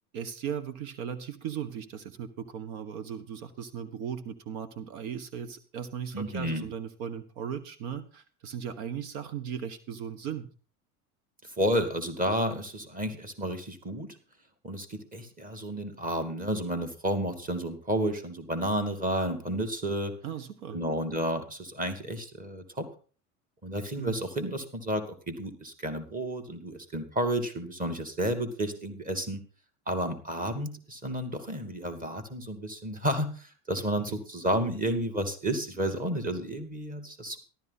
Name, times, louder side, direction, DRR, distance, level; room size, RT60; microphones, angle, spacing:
voice 1, 0.1-10.5 20.2-20.8 24.0-24.2 34.1-34.2, right 8 dB, 70° right, 12 dB, 1.5 m, -37 dB
voice 2, 6.1-6.7 11.4-14.2 14.6-20.1 20.7-22.9 23.6-29.4 29.9-37.4, right 1 dB, 20° right, 6 dB, 2.6 m, -31 dB
14.0 x 12.0 x 4.2 m, 0.38 s
supercardioid pair, 100°, 44 cm